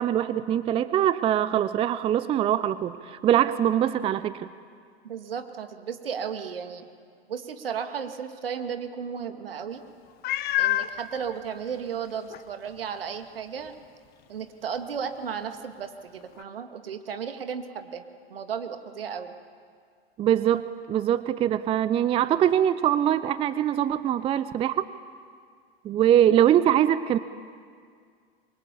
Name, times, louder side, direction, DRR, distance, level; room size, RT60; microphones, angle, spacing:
voice 1, 0.0-4.5 20.2-24.9 25.8-27.2, right 10 dB, 20° right, 15 dB, 0.6 m, -23 dB
voice 2, 5.0-6.9 7.3-9.8 10.6-13.7 14.3-18.0 18.3-19.3, right 7 dB, 65° right, 7 dB, 2.3 m, -34 dB
Meow, 10.2-10.9 11.7-11.8 12.3-12.4 16.4-16.5, left 14 dB, 30° left, 1.0 m, -26 dB
28.0 x 23.0 x 8.5 m, 2.1 s
figure-of-eight pair, 95°, 31 cm